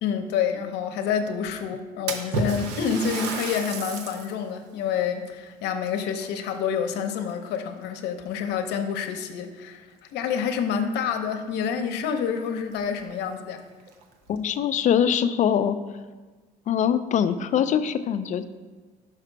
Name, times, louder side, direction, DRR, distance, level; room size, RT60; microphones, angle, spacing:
voice 1, 0.0-13.6, left 7 dB, 85° left, 6 dB, 0.7 m, -28 dB
Splash splatter, 2.1-4.4 4.9-5.0 5.9-6.9 7.3-7.7 8.5-8.6 9.1-9.2 11.4-11.5 11.8-11.9 12.5-12.6 13.0-13.1 13.8-14.4, right 4 dB, 80° right, 0.7 m, -32 dB
voice 2, 14.3-15.8 16.7-18.4, left 8 dB, 45° left, 12 dB, 0.4 m, -23 dB
5.8 x 4.9 x 4.5 m, 1.3 s
cardioid pair, 110°, 17 cm